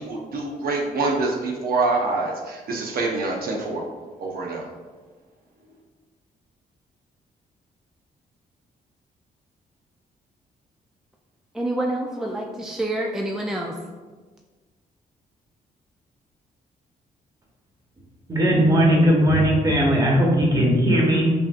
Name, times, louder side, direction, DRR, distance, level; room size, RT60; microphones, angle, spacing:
voice 1, 0.0-3.8 4.2-4.6, right 3 dB, 65° right, 0 dB, 0.7 m, -25 dB
voice 2, 11.6-13.7, right 1 dB, 5° right, -1 dB, 0.4 m, -27 dB
voice 3, 18.3-21.3, equal, 25° right, -3 dB, 1.2 m, -18 dB
5.5 x 2.6 x 2.5 m, 1.4 s
cardioid pair, 75°, 16 cm